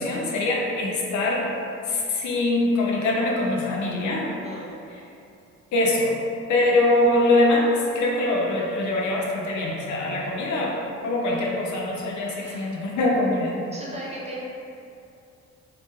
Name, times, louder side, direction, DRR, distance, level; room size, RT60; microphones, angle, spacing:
voice 1, 0.0-1.5 1.9-4.3 5.7-6.2 6.5-10.7 11.0-13.5, left 2 dB, 70° left, -2 dB, 0.6 m, -23 dB
voice 2, 4.4-4.8 12.4-12.8 13.7-14.4, right 1 dB, 20° right, -5 dB, 0.6 m, -37 dB
3.0 x 2.8 x 2.2 m, 2.6 s
cardioid pair, 90°, 30 cm